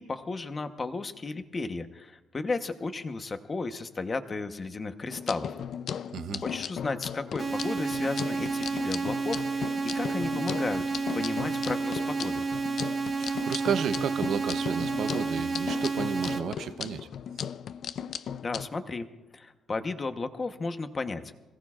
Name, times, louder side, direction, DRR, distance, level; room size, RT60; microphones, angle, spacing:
voice 1, 0.0-5.6 6.4-10.8 11.1-12.4 18.4-19.1 19.3-21.2, left 3 dB, 25° left, 0.9 m, -34 dB
sound 1, 5.1-18.7, left 8 dB, 50° left, 0.4 m, -37 dB
sound 2, 7.4-16.4, right 4 dB, 35° right, 2.1 m, -31 dB
voice 2, 13.2-17.1, right 7 dB, 60° right, 0.7 m, -32 dB
26.0 x 17.5 x 2.4 m
cardioid pair, 160°, 0 cm